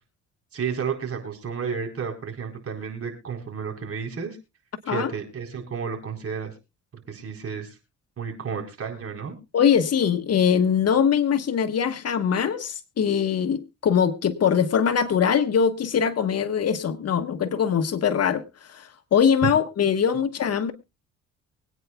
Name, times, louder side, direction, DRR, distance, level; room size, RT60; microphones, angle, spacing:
voice 1, 0.5-4.4 4.9-6.5 7.1-7.8 8.2-9.3 19.4-19.5, right 6 dB, 50° right, 3 dB, 4.1 m, -31 dB
voice 2, 9.5-18.4 18.7-20.7, left 7 dB, 55° left, 8 dB, 1.3 m, -22 dB
24.0 x 9.3 x 2.3 m, 0.26 s
cardioid pair, 90°, 30 cm